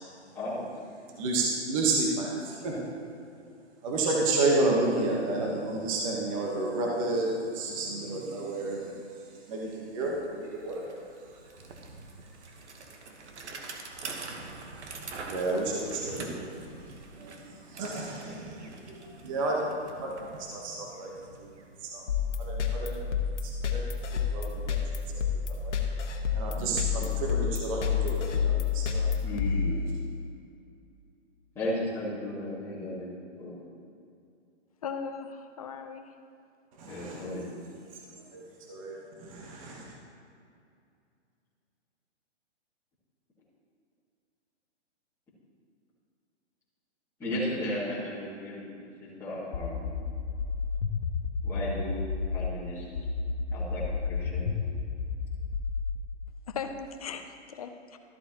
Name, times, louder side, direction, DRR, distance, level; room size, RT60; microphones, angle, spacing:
voice 1, 0.3-0.7 10.0-10.1 29.2-29.8 31.5-33.1 33.4-33.5 36.9-37.4 47.2-48.8 49.2-49.8 51.4-52.0 52.3-53.1 53.5-54.5, left 1 dB, 5° left, -10 dB, 2.2 m, -35 dB
voice 2, 1.2-2.8 3.8-8.9 9.5-10.8 15.3-16.6 17.2-19.6 20.0-21.1 21.4-21.5 21.8-22.0 22.4-23.0 23.4-23.8 24.3-24.8 25.5-25.7 26.3-29.1 36.8-37.2 38.1-38.4 38.7-39.6, right 2 dB, 30° right, -2 dB, 1.2 m, -31 dB
Bicycle, 9.2-9.3 9.6-22.5, right 3 dB, 70° right, 1.3 m, -45 dB
sound 1, 22.1-30.3, left 6 dB, 75° left, 1.3 m, -29 dB
voice 3, 34.8-36.1 56.5-58.0, left 6 dB, 30° left, 7 dB, 0.5 m, -38 dB
sound 2, 49.5-52.5 53.0-56.0, left 5 dB, 60° left, 0.8 m, -31 dB
13.5 x 8.2 x 3.0 m, 2.5 s
hypercardioid pair, 160°, 36 cm